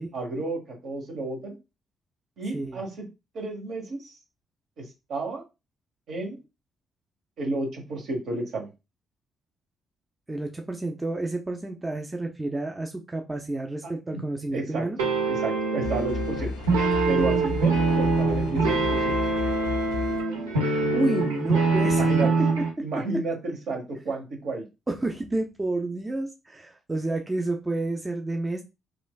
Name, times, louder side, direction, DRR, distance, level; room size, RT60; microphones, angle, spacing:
voice 1, 0.1-1.5 2.4-3.1 3.3-4.1 4.8-5.4 6.1-6.4 7.4-8.7 14.1-14.2 14.5-14.9 15.3-16.5 17.1-19.1 21.9-22.3 22.8-24.7, right 2 dB, 60° right, 1.1 m, -31 dB
voice 2, 10.3-15.0 20.9-22.3 24.9-28.6, right 2 dB, 20° right, 0.5 m, -30 dB
sound 1, 15.0-22.7, right 3 dB, 85° right, 0.6 m, -24 dB
sound 2, 15.8-20.2, left 4 dB, 75° left, 0.4 m, -33 dB
3.1 x 2.4 x 2.3 m
hypercardioid pair, 45°, 0 cm